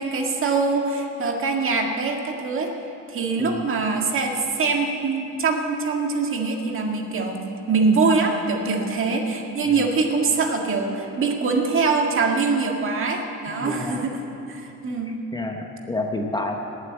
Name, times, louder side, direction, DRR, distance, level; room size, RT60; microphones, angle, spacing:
voice 1, 0.0-2.7 3.1-14.2 14.5-15.1, right 4 dB, 40° right, 2 dB, 1.9 m, -23 dB
voice 2, 13.6-14.0 15.3-16.5, left 2 dB, 15° left, 2 dB, 1.0 m, -29 dB
18.5 x 8.2 x 8.1 m, 2.8 s
cardioid pair, 135°, 31 cm